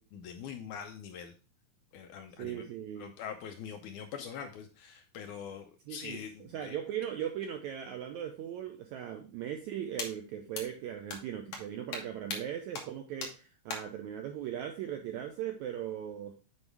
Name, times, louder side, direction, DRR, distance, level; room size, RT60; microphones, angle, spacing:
voice 1, 0.1-1.3 1.9-2.7 3.0-6.8, left 7 dB, 80° left, 5 dB, 1.8 m, -43 dB
voice 2, 2.4-3.1 5.9-16.4, right 10 dB, 85° right, 4 dB, 1.7 m, -39 dB
sound 1, 10.0-10.1 10.5-10.6 11.1-11.2 11.5-11.6 11.9-12.0 12.3-12.4 12.7-12.8 13.2-13.3 13.7-13.8, left 4 dB, 60° left, 1.7 m, -37 dB
8.1 x 4.7 x 3.4 m, 0.36 s
omnidirectional pair, 4.0 m